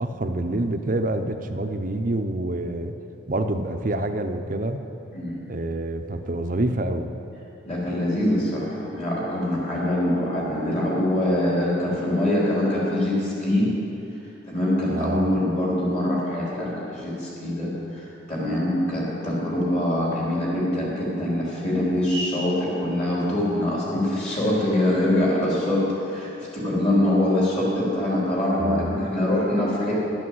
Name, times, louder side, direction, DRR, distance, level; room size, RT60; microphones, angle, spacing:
voice 1, 0.0-2.9 3.3-4.8 5.5-7.1 14.9-15.3 28.6-29.0, right 1 dB, 40° right, 6 dB, 0.6 m, -27 dB
voice 2, 7.6-13.7 14.5-29.9, left 1 dB, 35° left, -6 dB, 3.7 m, -24 dB
12.0 x 8.6 x 7.7 m, 2.9 s
head